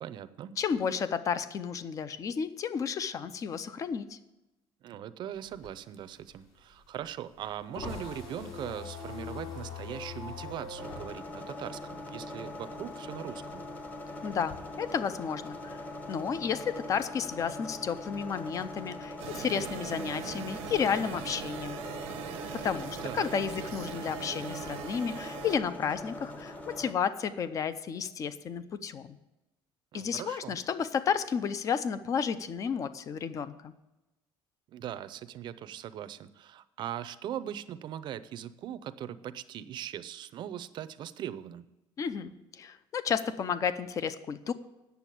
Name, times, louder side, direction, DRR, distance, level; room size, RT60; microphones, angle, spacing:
voice 1, 0.0-0.6 4.8-13.7 23.0-23.3 29.9-30.6 34.7-41.7, right 10 dB, 50° right, 13 dB, 0.6 m, -40 dB
voice 2, 0.6-4.2 14.2-15.8 16.1-21.8 22.5-29.2 29.9-33.7 42.0-44.5, left 7 dB, 35° left, 14 dB, 0.6 m, -32 dB
sound 1, 5.4-12.5 12.8-14.5, left 4 dB, 55° left, 3.4 m, -42 dB
sound 2, 10.8-26.9, left 2 dB, 15° left, 0.9 m, -42 dB
sound 3, 19.2-25.6, right 12 dB, 90° right, 0.8 m, -41 dB
9.2 x 7.0 x 8.3 m, 1.0 s
cardioid pair, 145°, 10 cm